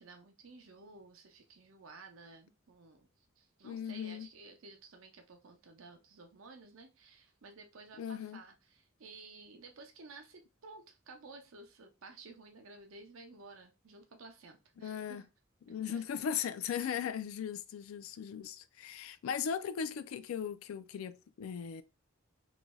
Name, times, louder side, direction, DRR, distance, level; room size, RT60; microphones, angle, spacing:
voice 1, 0.0-15.3 15.8-16.0 16.8-17.0, right 3 dB, 80° right, 0.6 m, -54 dB
voice 2, 3.6-4.3 8.0-8.4 14.8-15.2 15.7-21.8, left 8 dB, 85° left, 0.3 m, -38 dB
3.1 x 2.6 x 2.2 m
head